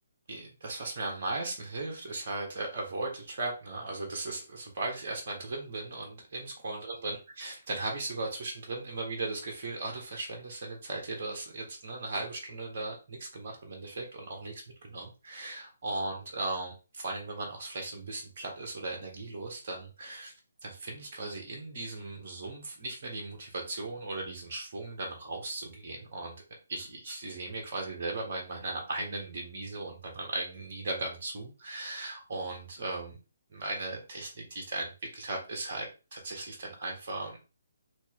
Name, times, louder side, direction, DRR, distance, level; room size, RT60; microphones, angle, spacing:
voice 1, 0.3-20.3 20.6-26.3 26.7-33.2 33.5-37.4, right 2 dB, 45° right, 0 dB, 1.5 m, -37 dB
3.1 x 3.1 x 3.6 m, 0.31 s
figure-of-eight pair, 135°, 0 cm